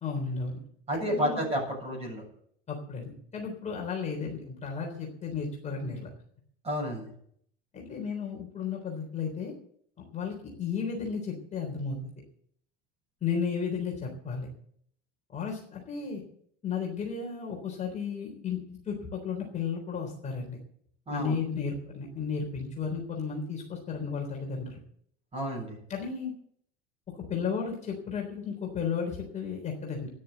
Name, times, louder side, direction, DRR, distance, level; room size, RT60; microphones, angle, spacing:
voice 1, 0.0-0.6 0.9-1.4 2.7-6.1 7.7-9.5 10.1-12.0 13.2-14.5 15.3-16.2 16.6-20.6 21.1-24.8 25.9-26.3 27.3-30.1, left 6 dB, 20° left, -1 dB, 3.6 m, -34 dB
voice 2, 0.9-2.2 6.6-7.1 21.1-21.4 25.3-25.8, equal, 20° right, 1 dB, 7.7 m, -31 dB
13.5 x 10.5 x 8.0 m, 0.65 s
cardioid pair, 150°, 32 cm